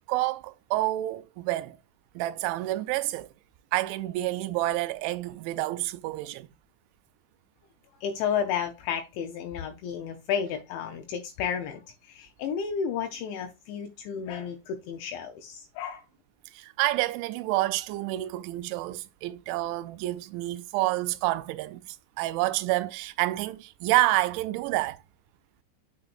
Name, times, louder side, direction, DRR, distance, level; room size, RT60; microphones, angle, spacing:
voice 1, 0.1-1.8 2.2-3.3 3.7-6.5 16.5-25.0, right 17 dB, 85° right, 2.9 m, -28 dB
voice 2, 8.0-16.0, left 7 dB, 80° left, 2.9 m, -32 dB
6.8 x 6.6 x 2.5 m
omnidirectional pair, 5.3 m